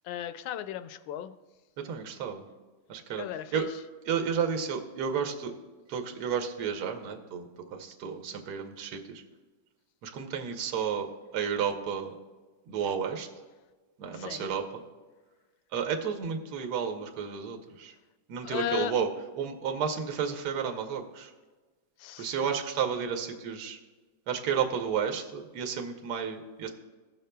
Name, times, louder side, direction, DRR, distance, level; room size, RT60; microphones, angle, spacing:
voice 1, 0.1-1.3 3.2-3.7 14.1-14.5 18.4-18.9 22.0-22.5, left 11 dB, 80° left, 11 dB, 1.3 m, -35 dB
voice 2, 1.8-2.4 2.9-3.3 3.5-3.7 4.1-5.5 5.9-9.0 10.0-11.1 11.3-12.1 12.7-13.3 14.0-14.6 15.7-17.9 18.3-19.1 19.4-21.3 22.2-23.8 24.3-26.7, right 7 dB, 60° right, 4 dB, 1.3 m, -32 dB
16.5 x 6.6 x 2.2 m, 1.3 s
omnidirectional pair, 2.2 m